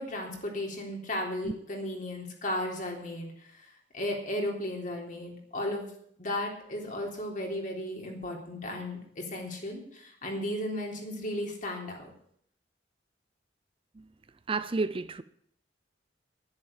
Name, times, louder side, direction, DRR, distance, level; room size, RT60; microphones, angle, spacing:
voice 1, 0.0-3.3 3.9-5.9 6.2-12.1, left 1 dB, 45° left, 3.5 m, -35 dB
voice 2, 14.5-15.2, right 3 dB, 30° right, 0.5 m, -30 dB
11.0 x 10.5 x 7.3 m
head